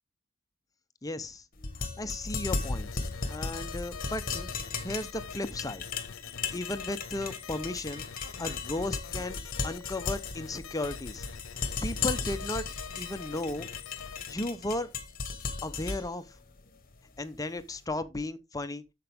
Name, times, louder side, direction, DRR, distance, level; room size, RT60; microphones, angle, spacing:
voice 1, 1.0-1.4 1.8-2.9 3.3-4.5 4.8-5.8 6.5-8.0 8.4-9.4 9.6-11.3 11.5-12.6 13.0-13.7 14.3-14.9 15.6-16.2 17.2-18.8, left 2 dB, 20° left, 0.7 m, -35 dB
sound 1, 1.6-17.6, left 4 dB, 45° left, 1.3 m, -36 dB
sound 2, 2.5-14.3, left 6 dB, 90° left, 0.7 m, -45 dB
9.2 x 6.9 x 3.5 m
head